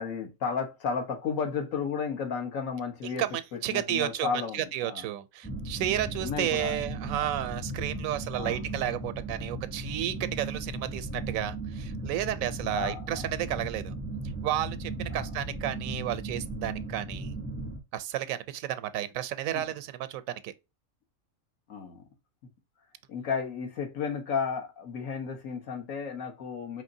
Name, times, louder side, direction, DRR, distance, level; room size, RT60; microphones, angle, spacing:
voice 1, 0.0-3.2 3.5-5.0 6.2-6.8 7.1-7.3 8.4-8.6 12.7-13.3 15.1-15.3 19.5-19.7 21.7-22.0 23.1-26.8, left 6 dB, 80° left, 1.5 m, -33 dB
voice 2, 3.0-13.9 14.4-17.3 17.9-20.5, right 12 dB, 90° right, 1.0 m, -32 dB
sound 1, 5.4-17.8, right 2 dB, 10° left, 0.5 m, -37 dB
4.8 x 3.1 x 2.6 m
omnidirectional pair, 1.4 m